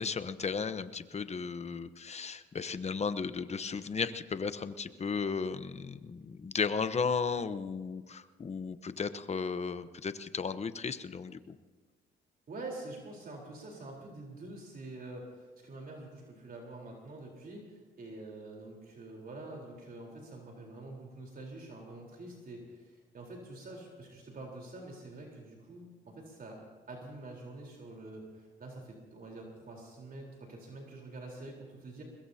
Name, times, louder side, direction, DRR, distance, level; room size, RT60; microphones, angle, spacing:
voice 1, 0.0-11.6, left 5 dB, 35° left, 12 dB, 1.0 m, -35 dB
voice 2, 12.5-26.6 26.9-32.0, right 2 dB, 50° right, -1 dB, 4.0 m, -46 dB
23.0 x 21.0 x 2.8 m, 1.4 s
cardioid pair, 90°, 20 cm